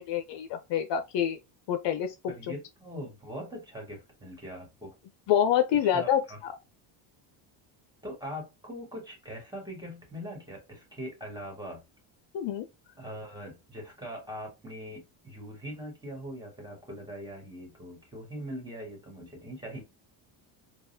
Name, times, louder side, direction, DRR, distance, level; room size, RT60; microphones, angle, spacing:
voice 1, 0.0-1.4 1.7-2.1 5.3-6.2 12.3-12.7, left 9 dB, 60° left, 0.6 m, -26 dB
voice 2, 2.3-4.9 5.8-6.4 8.0-11.8 13.0-19.8, equal, 10° right, 1.7 m, -41 dB
4.0 x 2.4 x 2.6 m
cardioid pair, 105°, 50 cm